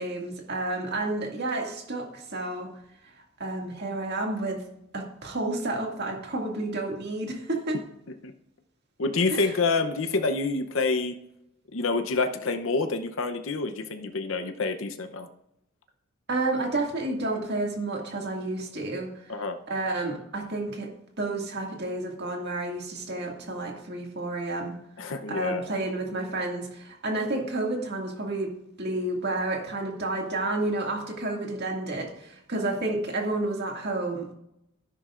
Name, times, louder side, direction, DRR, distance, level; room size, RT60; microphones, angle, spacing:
voice 1, 0.0-2.7 3.1-4.6 4.9-7.8 9.3-9.5 16.3-19.3 19.7-20.9 21.2-24.7 25.3-28.5 28.8-34.3, right 2 dB, 55° right, 1 dB, 2.1 m, -30 dB
voice 2, 9.0-11.2 11.7-15.3 19.3-19.6 25.0-25.6, left 3 dB, 70° left, 7 dB, 0.8 m, -27 dB
12.0 x 11.0 x 2.5 m, 0.80 s
head